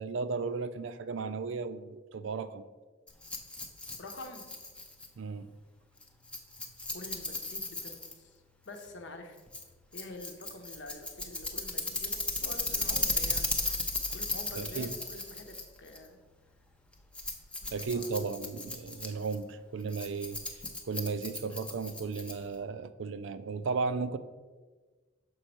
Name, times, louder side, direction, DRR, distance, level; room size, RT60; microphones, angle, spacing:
voice 1, 0.0-2.6 5.2-5.5 14.6-14.9 17.7-20.4 20.9-24.2, right 4 dB, 65° right, 13 dB, 0.4 m, -35 dB
Rattle, 3.1-22.6, left 2 dB, 5° left, 0.5 m, -37 dB
voice 2, 4.0-4.4 6.9-9.4 9.9-13.5 14.1-16.2 17.6-18.1 18.9-19.1, left 2 dB, 60° left, 5 dB, 0.9 m, -47 dB
6.4 x 5.3 x 4.3 m, 1.3 s
head